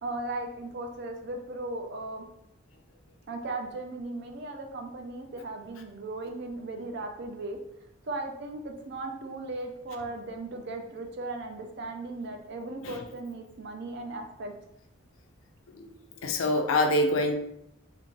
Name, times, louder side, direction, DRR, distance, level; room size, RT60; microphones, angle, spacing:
voice 1, 0.0-2.2 3.3-7.6 8.0-14.5, right 2 dB, 55° right, 3 dB, 0.4 m, -37 dB
voice 2, 16.2-17.4, left 1 dB, 75° left, 5 dB, 0.4 m, -25 dB
2.5 x 2.5 x 3.0 m, 0.80 s
head